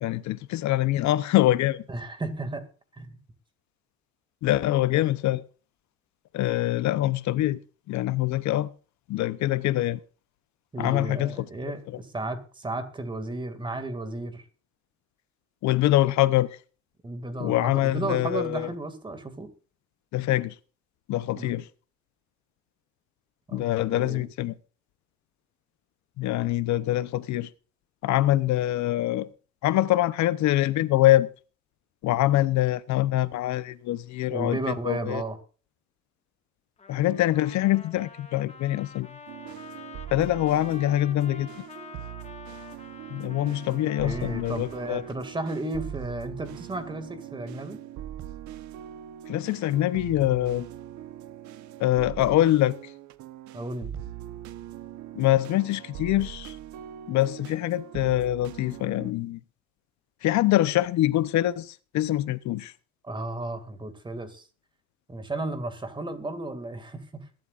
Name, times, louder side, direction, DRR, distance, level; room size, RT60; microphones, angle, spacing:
voice 1, 0.0-1.8 4.4-5.4 6.3-7.6 7.9-8.7 9.1-10.0 10.8-11.3 15.6-16.5 17.4-18.7 20.1-20.5 21.1-21.7 23.5-24.5 26.2-27.5 28.0-29.3 29.6-31.3 32.0-35.2 36.9-39.1 40.1-41.5 43.1-45.0 49.3-50.7 51.8-52.7 55.2-56.6 57.1-59.4 60.2-62.7, left 14 dB, 70° left, 0.8 m, -24 dB
voice 2, 1.9-2.6 2.9-3.2 10.7-14.4 17.0-19.5 21.4-21.5 23.5-24.3 34.3-35.4 44.0-47.8 53.5-53.9 63.0-64.4 65.1-67.3, right 2 dB, 15° right, 2.2 m, -34 dB
Trumpet, 36.8-45.2, left 5 dB, 20° left, 1.7 m, -47 dB
sound 1, 39.3-59.1, right 11 dB, 75° right, 1.0 m, -41 dB
22.0 x 12.0 x 2.5 m
cardioid pair, 160°, 29 cm